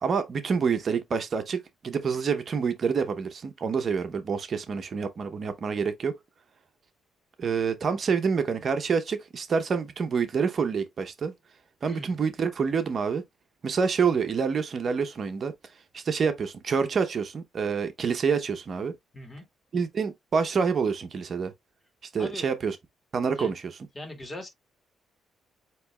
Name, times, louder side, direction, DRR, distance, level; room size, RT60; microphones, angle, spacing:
voice 1, 0.0-6.1 7.4-11.3 11.8-13.2 13.6-15.5 15.9-18.9 19.7-21.5 22.1-22.8 23.1-23.6, right 5 dB, 50° right, 0.8 m, -27 dB
voice 2, 11.9-12.2 19.1-19.4 22.2-22.5 23.4-23.5 24.0-24.5, left 1 dB, 25° left, 2.1 m, -39 dB
7.7 x 3.0 x 2.2 m
cardioid pair, 90°, 0 cm